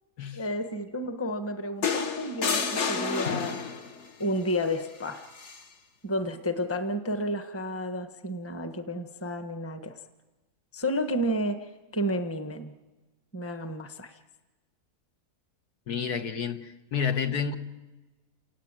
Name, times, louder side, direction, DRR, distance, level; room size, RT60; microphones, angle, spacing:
voice 1, 0.4-3.6 4.2-5.3 6.0-9.9 10.7-12.7 13.3-14.1, equal, 10° left, 8 dB, 1.3 m, -31 dB
sound 1, 1.8-4.0 5.4-5.6, left 5 dB, 50° left, 1.5 m, -29 dB
voice 2, 15.9-17.5, left 6 dB, 75° left, 8 dB, 2.0 m, -30 dB
28.5 x 18.5 x 9.1 m, 1.2 s
omnidirectional pair, 1.7 m